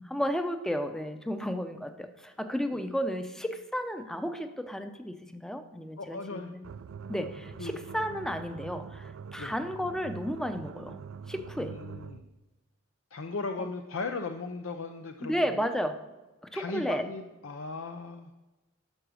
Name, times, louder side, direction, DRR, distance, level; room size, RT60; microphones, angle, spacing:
voice 1, 0.0-6.7 7.1-11.0 11.3-11.8 15.2-16.1 16.4-17.1, equal, 5° left, 8 dB, 0.6 m, -33 dB
voice 2, 6.0-6.6 7.6-7.8 9.4-9.5 11.6-12.2 13.1-15.7 16.5-18.3, left 3 dB, 70° left, 6 dB, 0.6 m, -37 dB
sound 1, 6.6-12.3, right 6 dB, 70° right, 0.4 m, -44 dB
11.5 x 6.1 x 6.3 m, 1.1 s
head